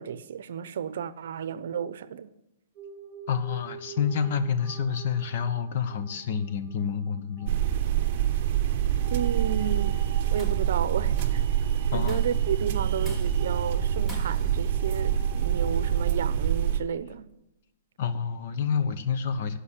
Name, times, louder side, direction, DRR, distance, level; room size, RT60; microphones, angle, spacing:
voice 1, 0.0-2.3 9.1-10.0 10.3-11.4 11.9-17.3, right 8 dB, 70° right, 0.7 m, -32 dB
sound 1, 2.7-16.0, right 5 dB, 30° right, 4.0 m, -47 dB
voice 2, 3.3-7.5 11.9-12.3 18.0-19.6, left 6 dB, 50° left, 1.0 m, -28 dB
sound 2, 7.5-16.8, right 10 dB, 45° right, 0.9 m, -26 dB
Tools, 10.1-10.7 11.2-11.5 12.1-12.5 13.0-13.6 14.1-14.6, equal, 5° left, 1.3 m, -45 dB
11.5 x 5.8 x 8.2 m
hypercardioid pair, 165°, 0 cm